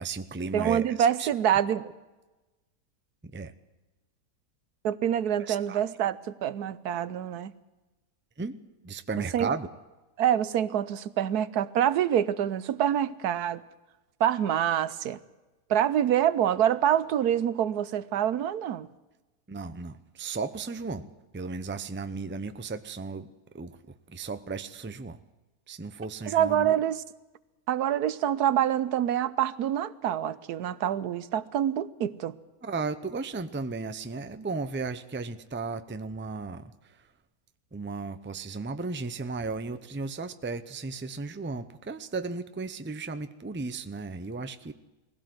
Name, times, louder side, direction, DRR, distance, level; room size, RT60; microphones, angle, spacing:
voice 1, 0.0-1.9 3.2-3.5 5.4-5.8 8.4-8.6 8.8-9.7 19.5-21.1 21.3-23.3 23.5-25.2 25.7-26.8 32.6-37.1 37.7-44.7, right 4 dB, 15° right, 11 dB, 0.5 m, -35 dB
voice 2, 0.5-1.8 4.8-7.5 9.3-9.5 10.2-13.6 14.2-15.2 15.7-18.9 26.3-27.0 27.7-32.3, right 10 dB, 90° right, 16 dB, 1.4 m, -26 dB
20.5 x 16.5 x 7.8 m, 1.1 s
omnidirectional pair, 1.6 m